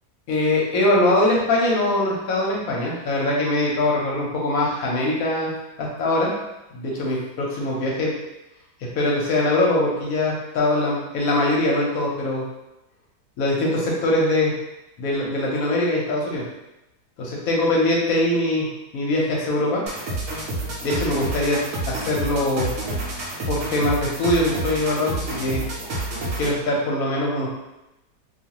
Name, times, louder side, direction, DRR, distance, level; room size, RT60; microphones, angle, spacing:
voice 1, 0.3-6.3 6.7-8.1 8.8-12.5 13.4-14.6 15.0-16.4 17.2-19.8 20.8-21.6 21.9-22.7 23.5-25.6 26.4-27.5, left 1 dB, 65° left, -3 dB, 1.0 m, -22 dB
sound 1, 19.9-26.6, right 2 dB, 65° right, 0.8 m, -29 dB
2.6 x 2.4 x 2.9 m, 0.94 s
omnidirectional pair, 1.8 m